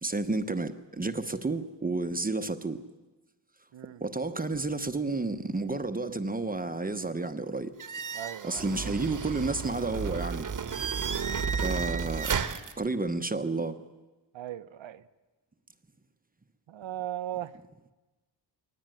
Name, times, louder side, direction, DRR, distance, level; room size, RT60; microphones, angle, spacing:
voice 1, 0.0-2.8 4.0-7.7 8.4-10.5 11.6-12.4 12.8-13.7, right 3 dB, 20° right, 0.9 m, -31 dB
voice 2, 3.7-4.0 8.1-8.7 14.3-15.0 16.7-17.6, right 12 dB, 85° right, 1.0 m, -38 dB
sound 1, 7.8-12.7, right 6 dB, 45° right, 1.2 m, -32 dB
22.5 x 18.5 x 9.2 m
wide cardioid pair, 135°, 45 cm